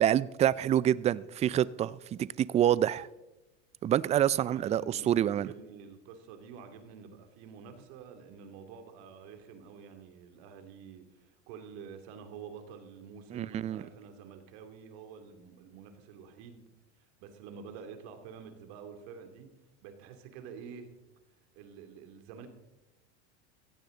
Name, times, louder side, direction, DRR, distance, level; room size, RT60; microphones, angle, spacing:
voice 1, 0.0-3.1 3.8-5.5 13.3-13.8, right 11 dB, 20° right, 0.4 m, -27 dB
voice 2, 4.5-16.6 17.2-19.5 19.8-20.9 21.5-22.5, right 6 dB, 65° right, 2.7 m, -48 dB
16.0 x 15.5 x 3.9 m
supercardioid pair, 110°, 33 cm